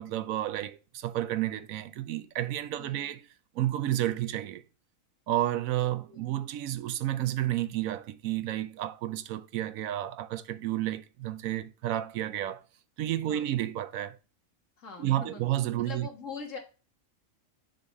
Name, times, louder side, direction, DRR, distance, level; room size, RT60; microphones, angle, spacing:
voice 1, 0.0-3.3 3.5-4.6 5.3-12.6 13.0-14.2 15.0-16.1, right 13 dB, 85° right, 1.0 m, -31 dB
voice 2, 2.8-3.2 6.1-6.3 13.3-13.6 14.8-15.4 15.8-16.6, left 5 dB, 65° left, 2.0 m, -43 dB
6.6 x 4.0 x 4.6 m
omnidirectional pair, 1.4 m